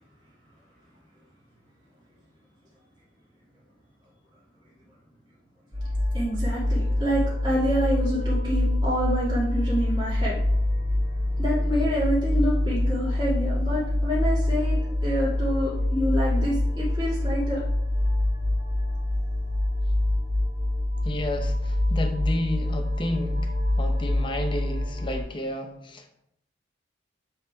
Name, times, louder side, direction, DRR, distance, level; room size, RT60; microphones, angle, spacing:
sound 1, 5.7-25.2, left 1 dB, 70° right, 2.5 m, -25 dB
voice 1, 6.1-10.4 11.4-14.8 15.0-17.6, equal, 25° right, -8 dB, 2.2 m, -27 dB
voice 2, 21.0-26.1, left 1 dB, 25° left, 5 dB, 0.7 m, -31 dB
8.6 x 3.5 x 4.7 m, 0.78 s
head